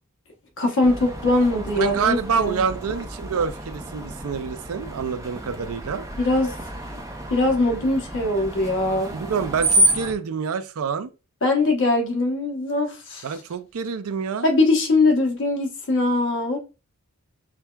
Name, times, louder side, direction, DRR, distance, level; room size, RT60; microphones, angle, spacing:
voice 1, 0.6-2.6 6.2-6.5 6.9-7.0 7.3-9.2 11.4-13.3 14.4-16.6, left 2 dB, 65° left, 0.9 m, -21 dB
Screech, 0.8-10.1, right 1 dB, 15° right, 0.5 m, -29 dB
voice 2, 1.8-6.1 9.1-11.1 13.2-14.5, right 6 dB, 70° right, 0.4 m, -27 dB
5.9 x 2.2 x 2.2 m
head